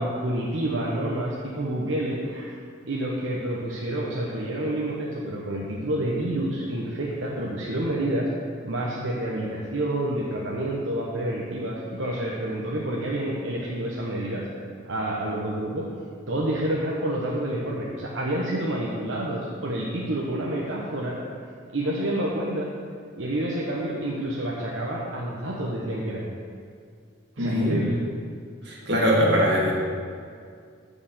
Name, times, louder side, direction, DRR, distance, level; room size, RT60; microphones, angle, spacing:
voice 1, 0.0-2.5 2.9-8.3 8.6-14.5 14.8-15.9 16.3-21.2 21.7-22.7 23.2-26.2 27.4-28.0, right 1 dB, 75° right, -4 dB, 1.0 m, -28 dB
voice 2, 27.4-27.8 28.6-29.7, equal, 55° right, -4 dB, 2.1 m, -21 dB
8.7 x 5.1 x 7.2 m, 2.2 s
head